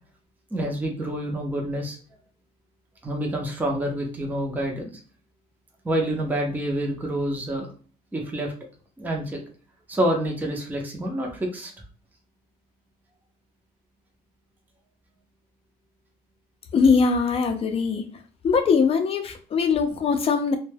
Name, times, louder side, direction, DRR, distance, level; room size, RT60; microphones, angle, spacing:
voice 1, 0.5-2.0 3.0-4.9 5.8-7.7 8.1-8.5 9.0-9.4 9.9-11.7, right 1 dB, 10° right, 0 dB, 0.6 m, -27 dB
voice 2, 16.7-18.1 18.4-20.6, left 5 dB, 35° left, 7 dB, 0.5 m, -21 dB
2.1 x 2.1 x 3.2 m, 0.40 s
cardioid pair, 110°, 17 cm